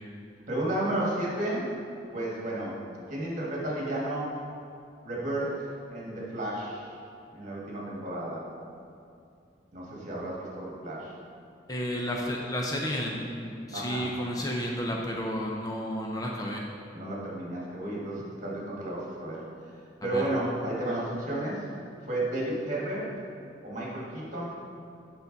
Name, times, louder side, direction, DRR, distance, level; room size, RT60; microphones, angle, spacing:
voice 1, 0.5-1.7 2.1-2.8 3.1-4.4 5.0-7.0 7.3-8.5 9.7-11.1 13.7-14.1 16.9-19.4 20.0-21.6 22.1-23.1 23.6-24.5, right 1 dB, 45° right, -5 dB, 1.8 m, -32 dB
voice 2, 11.7-16.6 20.1-20.2, equal, 20° left, -1 dB, 0.5 m, -32 dB
8.2 x 5.7 x 4.0 m, 2.5 s
head